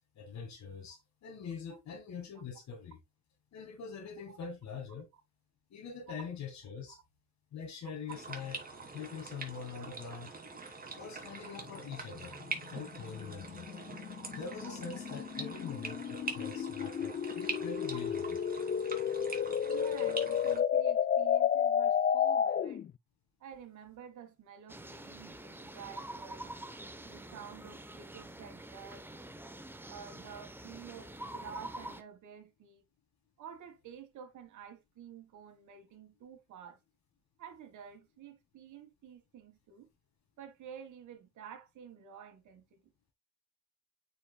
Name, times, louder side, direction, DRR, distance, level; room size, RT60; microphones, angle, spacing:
voice 1, 0.2-3.0 3.5-5.1 5.7-7.0 7.5-8.6 8.9-10.4 10.9-12.3 12.7-13.7 14.3-18.4, left 6 dB, 65° left, 1.9 m, -44 dB
sound 1, 8.1-20.6, right 3 dB, 30° right, 2.7 m, -44 dB
sound 2, 11.6-22.9, left 8 dB, 35° left, 0.4 m, -32 dB
voice 2, 19.7-22.8 23.4-26.5 27.0-29.1 29.9-32.8 33.4-36.8 37.4-39.9 40.4-42.8, right 8 dB, 75° right, 1.8 m, -50 dB
sound 3, 24.7-32.0, right 1 dB, 5° right, 0.9 m, -46 dB
8.4 x 5.2 x 2.3 m
cardioid pair, 90°, 30 cm